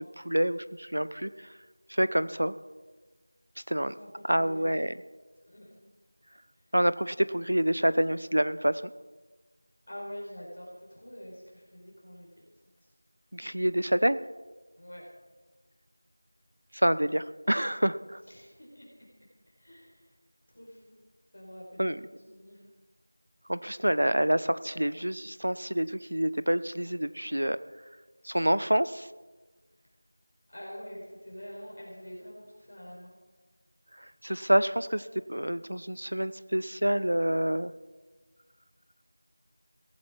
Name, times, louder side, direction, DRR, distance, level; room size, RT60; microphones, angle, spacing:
voice 1, 0.0-1.5 1.9-2.5 3.7-3.9 4.3-5.0 6.7-8.8 13.3-14.2 16.7-18.2 21.8-22.0 23.5-27.6 28.2-29.1 34.0-37.7, right 1 dB, 80° right, 15 dB, 0.9 m, -27 dB
voice 2, 3.8-4.8 5.5-5.8 6.7-6.8 9.9-12.5 12.8-12.9 14.7-15.0 18.3-19.1 19.4-20.1 20.5-21.0 21.3-22.6 30.5-33.1, equal, 45° left, -4 dB, 4.8 m, -46 dB
17.0 x 15.0 x 4.6 m, 1.3 s
figure-of-eight pair, 180°, 0 cm